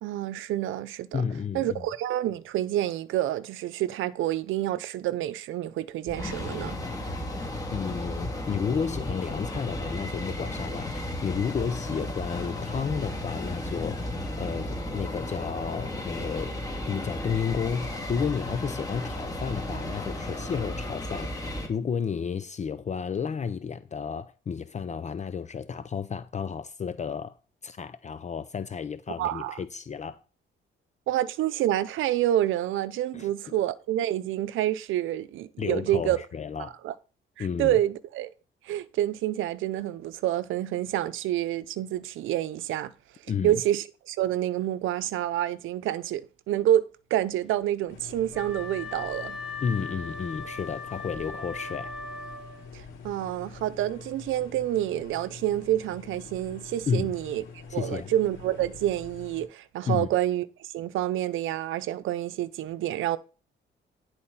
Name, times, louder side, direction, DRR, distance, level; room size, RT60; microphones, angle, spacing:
voice 1, 0.0-1.2 1.5-6.8 29.2-29.6 31.1-36.2 36.6-36.9 37.4-38.3 38.7-42.9 43.4-46.9 47.1-49.4 52.7-57.4 57.7-63.2, right 13 dB, 85° right, 0.7 m, -28 dB
voice 2, 1.1-1.8 7.7-16.6 16.8-27.4 27.6-30.2 33.1-33.5 35.6-36.8 37.4-37.8 43.3-43.6 49.6-51.9 56.9-57.1 57.7-58.1 59.9-60.1, left 6 dB, 35° left, 0.6 m, -32 dB
sound 1, 6.1-21.7, left 1 dB, 20° left, 2.7 m, -34 dB
sound 2, 47.9-59.5, left 5 dB, 85° left, 2.7 m, -46 dB
Wind instrument woodwind instrument, 48.3-52.8, left 3 dB, 5° right, 3.8 m, -39 dB
10.5 x 4.3 x 5.6 m
cardioid pair, 90°, 20 cm